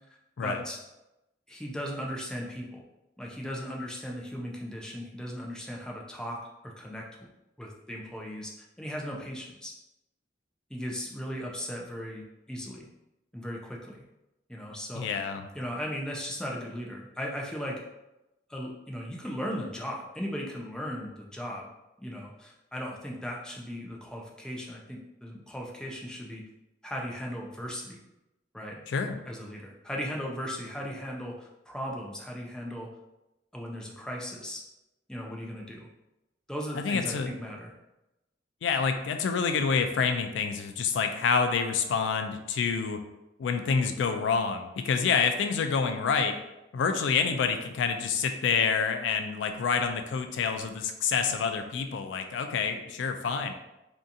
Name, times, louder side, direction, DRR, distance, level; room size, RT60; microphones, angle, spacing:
voice 1, 0.4-0.8 1.5-2.8 3.2-7.1 7.6-8.5 8.8-9.7 10.7-12.9 13.3-14.0 14.5-15.1 15.5-17.8 18.5-21.7 22.0-26.5 26.8-28.0 28.5-28.8 29.3-32.9 33.5-34.6 35.1-35.9 36.5-37.7, equal, 5° left, -1 dB, 0.3 m, -37 dB
voice 2, 14.9-15.5 28.9-29.2 36.7-37.3 38.6-43.0 43.4-46.4 46.7-53.5, left 5 dB, 85° left, 6 dB, 0.3 m, -27 dB
2.7 x 2.3 x 2.5 m, 0.95 s
head